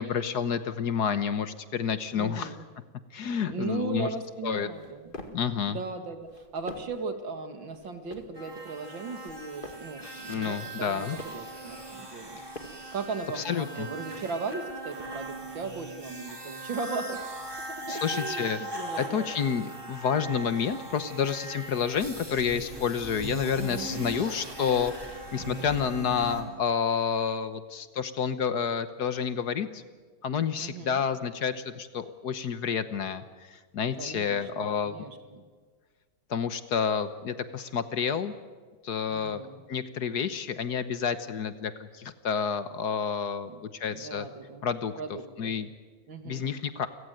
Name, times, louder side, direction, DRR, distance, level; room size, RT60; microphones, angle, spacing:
voice 1, 0.0-2.5 3.1-4.1 4.4-4.7 5.3-5.8 10.3-11.2 13.4-13.9 17.9-18.6 19.0-29.8 30.2-34.9 36.3-38.3 38.8-39.4 39.7-44.3 44.6-44.9 45.4-45.7 46.2-46.9, left 7 dB, 60° left, 12 dB, 1.5 m, -29 dB
voice 2, 2.1-2.6 3.4-5.1 5.7-17.2 17.7-19.3 23.5-24.2 30.6-31.0 33.9-35.5 39.1-39.6 43.5-43.6 43.9-44.7 45.0-45.5 46.1-46.4, right 4 dB, 70° right, 8 dB, 2.7 m, -37 dB
sound 1, 4.7-5.5 6.2-7.1 7.7-8.4 9.1-10.0 10.7-11.5 12.2-13.0, left 1 dB, 25° left, 2.2 m, -46 dB
sound 2, 8.3-26.4, right 2 dB, 10° right, 3.9 m, -40 dB
30.0 x 16.5 x 9.3 m, 1.5 s
omnidirectional pair, 2.1 m